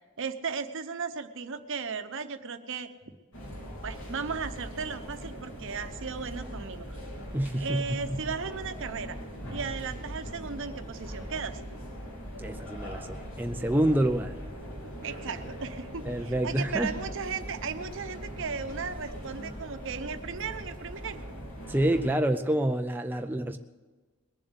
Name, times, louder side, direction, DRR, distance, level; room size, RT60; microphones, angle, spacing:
voice 1, 0.2-2.9 3.8-6.9 7.6-9.2 9.5-11.6 15.0-21.2, right 5 dB, 60° right, 10 dB, 0.9 m, -36 dB
sound 1, 3.3-22.1, equal, 65° left, 3.3 m, -41 dB
voice 2, 7.3-8.2 12.4-14.4 16.1-16.9 21.7-23.6, right 1 dB, 10° right, 5 dB, 0.5 m, -27 dB
20.5 x 7.4 x 8.0 m, 1.3 s
head